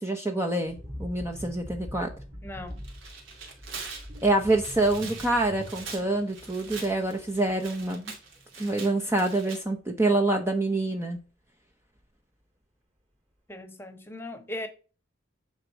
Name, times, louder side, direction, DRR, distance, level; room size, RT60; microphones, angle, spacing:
voice 1, 0.0-2.1 4.2-8.1 8.6-11.2, right 2 dB, 15° right, 0.8 m, -26 dB
sound 1, 0.6-8.1 8.3-8.5, equal, 30° right, 2.9 m, -43 dB
voice 2, 2.4-2.8 13.5-14.7, left 1 dB, 10° left, 1.2 m, -38 dB
Tearing, 2.7-9.6, right 4 dB, 70° right, 2.6 m, -43 dB
9.6 x 4.0 x 4.7 m
head